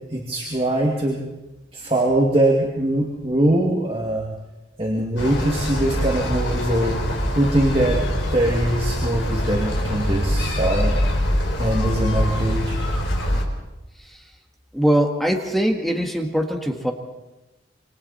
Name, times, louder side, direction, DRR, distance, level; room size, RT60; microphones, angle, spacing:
voice 1, 0.1-1.2 1.7-4.3 4.8-8.0 8.3-11.0 11.6-12.8, right 1 dB, 30° right, -2 dB, 2.4 m, -22 dB
sound 1, 5.2-13.4, equal, 80° left, 4.3 m, -24 dB
voice 2, 14.7-16.9, right 1 dB, ahead, 2 dB, 1.7 m, -22 dB
27.0 x 24.0 x 4.3 m, 1.0 s
head